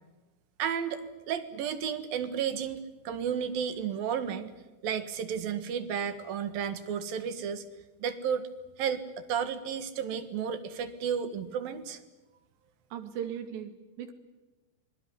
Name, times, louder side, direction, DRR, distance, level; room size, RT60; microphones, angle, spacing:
voice 1, 0.6-4.5 4.8-7.6 8.0-8.5 8.8-12.0, right 7 dB, 65° right, 10 dB, 3.2 m, -32 dB
voice 2, 12.9-14.1, right 9 dB, 80° right, 7 dB, 4.3 m, -38 dB
26.0 x 22.0 x 9.9 m, 1.1 s
omnidirectional pair, 4.9 m